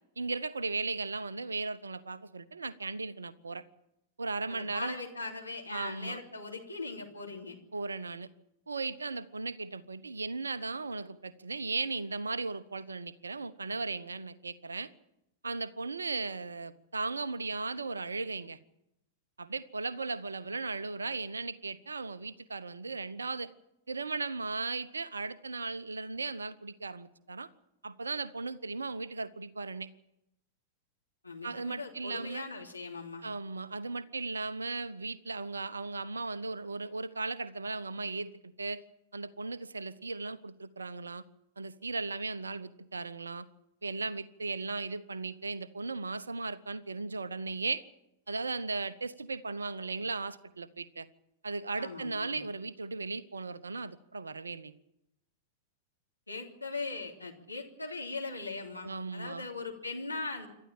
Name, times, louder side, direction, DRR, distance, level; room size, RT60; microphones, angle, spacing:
voice 1, 0.2-3.6 4.2-5.0 5.7-6.2 7.7-8.3 8.7-14.9 15.4-18.6 19.4-23.5 23.9-27.5 27.8-29.9 31.4-32.4 33.2-38.8 39.1-41.2 41.6-43.5 43.8-47.8 48.3-51.1 51.4-54.7 58.8-59.5, right 3 dB, 75° right, 15 dB, 0.8 m, -37 dB
voice 2, 4.5-7.6 31.2-33.3 51.8-52.5 56.3-60.5, left 3 dB, 85° left, 1 dB, 3.2 m, -40 dB
27.5 x 12.5 x 8.9 m, 0.86 s
figure-of-eight pair, 95°, 0 cm